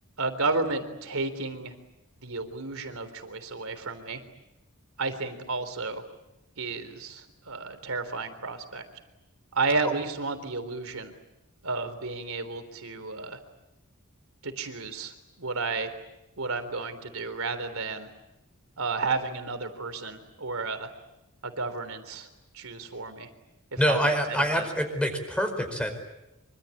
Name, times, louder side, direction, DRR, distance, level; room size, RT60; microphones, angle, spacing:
voice 1, 0.2-1.7 2.2-4.2 5.0-6.0 6.6-8.8 9.5-11.1 11.6-13.4 14.4-15.9 16.4-18.1 18.8-20.9 21.4-22.3 22.5-23.3 23.7-24.7, right 3 dB, 65° right, 9 dB, 3.7 m, -32 dB
voice 2, 23.8-25.9, equal, 5° left, 6 dB, 4.9 m, -26 dB
26.0 x 25.5 x 8.6 m, 0.92 s
head